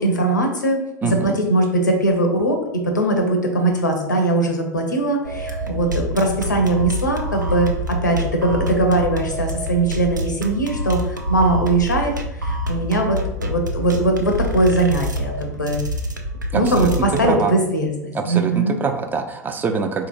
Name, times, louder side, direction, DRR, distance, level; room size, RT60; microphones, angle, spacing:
voice 1, 0.0-2.6 2.8-12.1 12.4-15.8 16.5-18.8, right 2 dB, 85° left, 3 dB, 0.6 m, -20 dB
voice 2, 1.0-1.4 16.5-16.9 17.2-17.5 18.1-20.1, right 5 dB, 20° right, 6 dB, 0.3 m, -24 dB
sound 1, 5.2-17.3, equal, 90° right, 0.4 m, -26 dB
3.9 x 2.8 x 2.5 m, 0.89 s
figure-of-eight pair, 85°, 10 cm